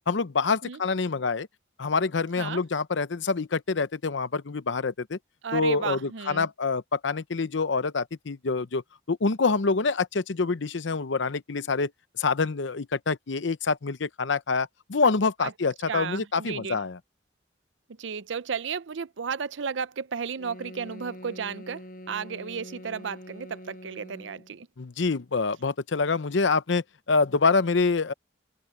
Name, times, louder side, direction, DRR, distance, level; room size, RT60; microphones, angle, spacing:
voice 1, 0.1-1.5 1.8-5.2 5.5-8.8 9.1-11.9 12.2-17.0 24.8-28.1, left 4 dB, 75° left, 0.7 m, -26 dB
voice 2, 5.4-6.5 15.4-15.5 15.9-16.8 18.0-24.7, right 6 dB, 75° right, 0.6 m, -33 dB
sound 1, 20.4-24.6, equal, 45° left, 7.7 m, -44 dB
head